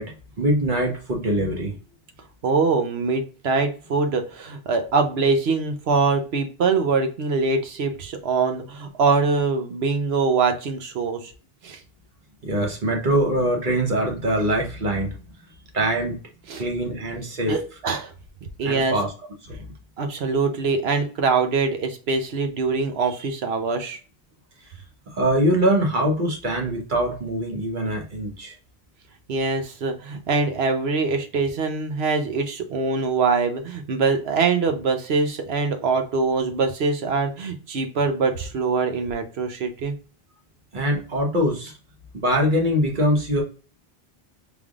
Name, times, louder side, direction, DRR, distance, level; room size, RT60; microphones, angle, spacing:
voice 1, 0.0-1.7 12.4-15.1 15.7-16.2 16.6-17.6 18.6-19.1 19.4-19.7 25.1-28.5 40.7-41.8 42.1-43.4, right 1 dB, 50° right, 1 dB, 1.2 m, -23 dB
voice 2, 2.4-11.3 11.6-11.8 16.5-16.6 17.5-18.1 18.6-18.9 20.0-24.0 29.3-39.9, right 4 dB, 80° right, 6 dB, 1.0 m, -23 dB
5.1 x 3.5 x 2.4 m, 0.37 s
omnidirectional pair, 1.0 m